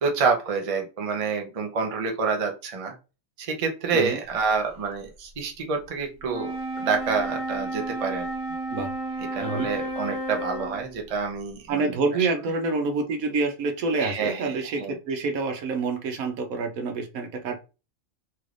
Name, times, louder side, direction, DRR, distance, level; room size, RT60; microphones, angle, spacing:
voice 1, 0.0-2.9 3.4-6.5 6.8-8.3 9.3-11.9 12.2-12.3 14.0-14.9, right 5 dB, 45° right, 2 dB, 0.4 m, -27 dB
Wind instrument woodwind instrument, 6.2-11.0, right 1 dB, 65° left, 1.2 m, -32 dB
voice 2, 11.7-17.5, right 3 dB, 80° right, 5 dB, 1.1 m, -27 dB
3.1 x 3.1 x 2.5 m, 0.31 s
omnidirectional pair, 1.4 m